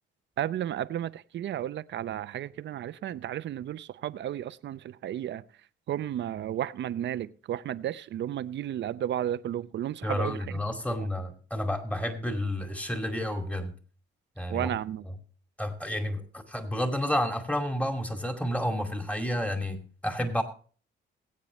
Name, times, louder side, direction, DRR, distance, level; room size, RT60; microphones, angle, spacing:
voice 1, 0.4-5.4 5.9-10.6 14.5-15.1, right 11 dB, 65° right, 15 dB, 0.7 m, -33 dB
voice 2, 10.0-13.7 14.4-14.7 15.6-20.4, left 1 dB, 5° left, 6 dB, 2.3 m, -30 dB
20.5 x 8.6 x 3.1 m, 0.41 s
cardioid pair, 90°, 20 cm